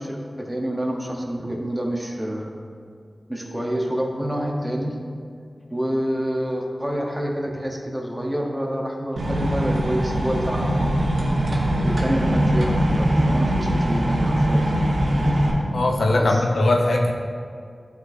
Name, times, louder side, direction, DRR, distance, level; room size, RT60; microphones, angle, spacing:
voice 1, 0.0-2.6 3.3-5.0 5.7-11.0 11.8-14.7 16.1-16.5, equal, 15° right, 0 dB, 0.9 m, -27 dB
sound 1, 9.2-15.5, right 1 dB, 85° right, 1.0 m, -21 dB
voice 2, 15.7-17.1, left 2 dB, 90° left, 1 dB, 0.6 m, -20 dB
11.0 x 4.0 x 2.7 m, 2.2 s
wide cardioid pair, 65°, 0 cm